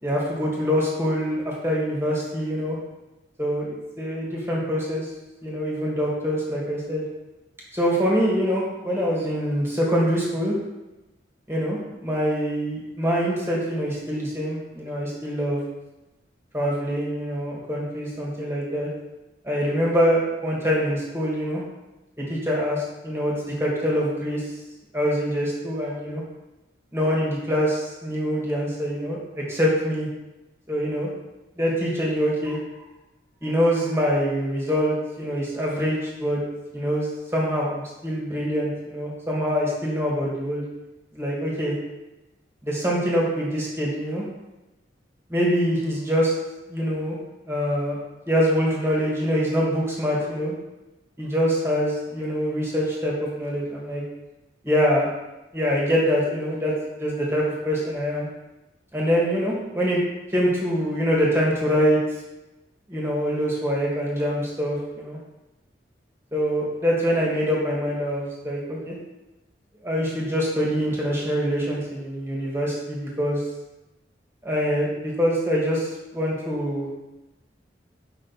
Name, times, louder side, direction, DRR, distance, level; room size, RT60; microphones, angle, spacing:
voice 1, 0.0-2.8 3.4-5.1 5.4-7.1 7.7-10.5 11.5-15.6 16.5-18.9 19.4-21.6 22.2-24.4 24.9-26.2 26.9-29.2 29.5-30.1 30.7-31.1 31.6-32.6 33.4-36.4 36.7-40.6 41.1-41.7 42.6-44.2 45.3-46.3 46.7-47.2 47.5-48.0 48.3-50.5 51.2-54.0 54.6-55.1 55.5-58.3 58.9-60.0 60.3-62.0 62.9-65.2 66.3-68.9 69.8-73.4 74.4-76.9, equal, 15° right, -4 dB, 1.9 m, -24 dB
7.7 x 5.5 x 4.1 m, 1.0 s
head